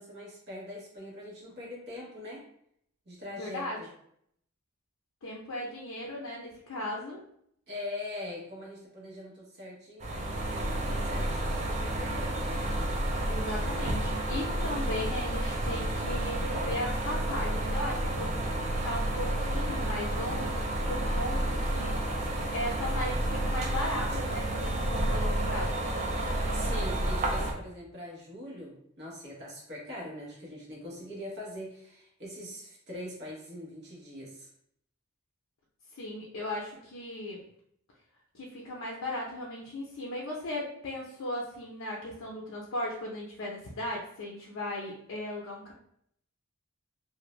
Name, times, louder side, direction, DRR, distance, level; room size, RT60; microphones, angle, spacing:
voice 1, 0.0-2.4 3.1-3.7 7.7-12.6 26.5-34.5, left 1 dB, 50° right, -4 dB, 1.0 m, -42 dB
voice 2, 3.4-3.8 5.2-7.2 13.3-18.4 18.8-22.0 22.5-25.9 35.9-37.4 38.3-45.7, left 1 dB, 70° left, -3 dB, 0.5 m, -37 dB
sound 1, 10.0-27.5, right 1 dB, 30° right, 0.4 m, -30 dB
2.5 x 2.1 x 3.0 m, 0.69 s
head